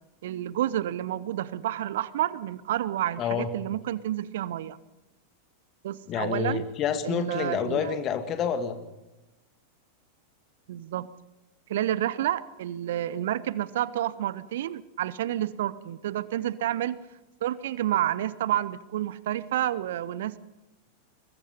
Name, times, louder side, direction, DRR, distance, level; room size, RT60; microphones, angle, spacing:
voice 1, 0.2-4.8 5.8-6.7 7.0-8.0 10.7-11.1 11.7-17.0 17.4-20.4, right 12 dB, 55° right, 19 dB, 0.8 m, -29 dB
voice 2, 3.2-3.5 6.1-8.8, left 8 dB, 35° left, 9 dB, 2.3 m, -28 dB
22.5 x 21.0 x 5.5 m, 1.0 s
figure-of-eight pair, 90°, 0 cm